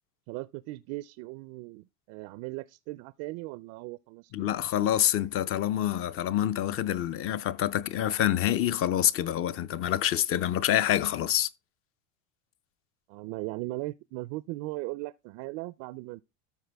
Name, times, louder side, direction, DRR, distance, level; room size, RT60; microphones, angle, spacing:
voice 1, 0.3-4.5 13.1-16.2, right 20 dB, 55° right, 0.4 m, -38 dB
voice 2, 4.3-11.5, left 11 dB, 40° left, 0.6 m, -27 dB
13.0 x 4.4 x 3.4 m
supercardioid pair, 125°, 36 cm